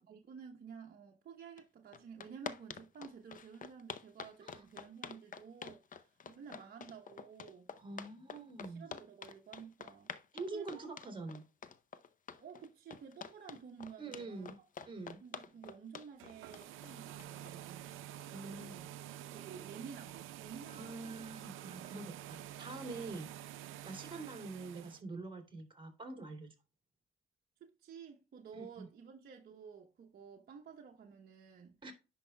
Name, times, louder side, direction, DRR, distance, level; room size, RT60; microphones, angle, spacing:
voice 1, 0.0-7.7 8.6-10.1 10.4-10.9 12.3-14.5 15.2-17.9 18.3-18.8 19.3-21.2 27.6-31.8, right 6 dB, 50° right, 1.0 m, -52 dB
sound 1, 1.6-1.7 1.9-17.5, left 7 dB, 40° left, 0.7 m, -47 dB
voice 2, 7.8-8.9 10.3-11.4 14.0-14.6 14.8-15.2 18.3-18.9 20.7-26.5 28.5-28.9 31.8-31.9, right 3 dB, 25° right, 2.8 m, -45 dB
sound 2, 16.1-25.0, right 12 dB, 85° right, 0.6 m, -49 dB
10.5 x 5.5 x 2.2 m
cardioid pair, 90°, 20 cm